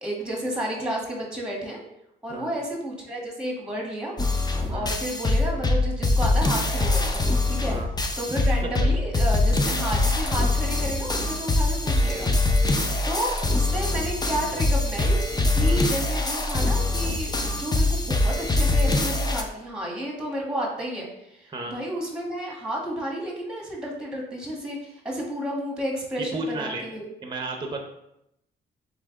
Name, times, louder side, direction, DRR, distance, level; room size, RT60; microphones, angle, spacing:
voice 1, 0.0-1.8 2.2-4.1 4.7-7.2 7.5-7.8 8.2-15.2 15.5-27.1, equal, 5° right, -1 dB, 1.3 m, -31 dB
sound 1, 4.2-19.4, left 2 dB, 20° left, 0.5 m, -23 dB
voice 2, 26.2-26.8 27.2-27.8, right 2 dB, 25° right, 3 dB, 0.6 m, -34 dB
3.7 x 3.3 x 3.6 m, 0.82 s
cardioid pair, 85°, 19 cm